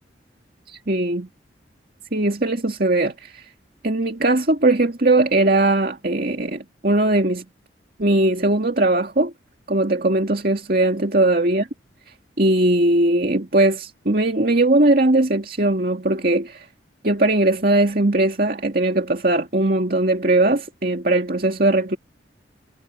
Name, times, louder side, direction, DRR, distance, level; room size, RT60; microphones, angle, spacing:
voice 1, 0.7-1.3 2.1-3.5 3.8-7.4 8.0-9.3 9.7-11.6 12.4-16.7 17.0-22.0, right 2 dB, 50° right, 2.3 m, -19 dB
head